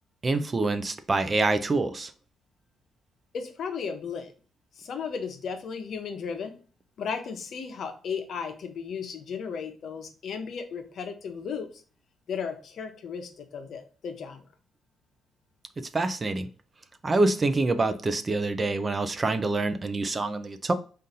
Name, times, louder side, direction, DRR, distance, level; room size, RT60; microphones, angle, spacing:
voice 1, 0.2-2.1 15.9-16.5 17.0-20.7, right 2 dB, 30° right, 0.5 m, -26 dB
voice 2, 3.3-4.3 4.8-6.5 7.0-11.7 12.3-14.4, left 6 dB, 60° left, 0.8 m, -35 dB
3.8 x 2.6 x 4.0 m
cardioid pair, 90°, 0 cm